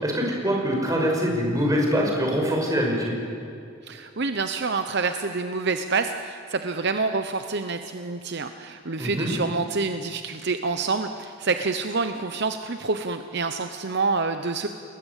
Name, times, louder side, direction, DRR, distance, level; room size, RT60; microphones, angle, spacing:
voice 1, 0.0-3.1 9.0-9.3, equal, 15° right, 0 dB, 5.7 m, -24 dB
voice 2, 3.8-14.7, right 4 dB, 55° right, 8 dB, 0.9 m, -27 dB
29.5 x 20.5 x 8.4 m, 2.5 s
head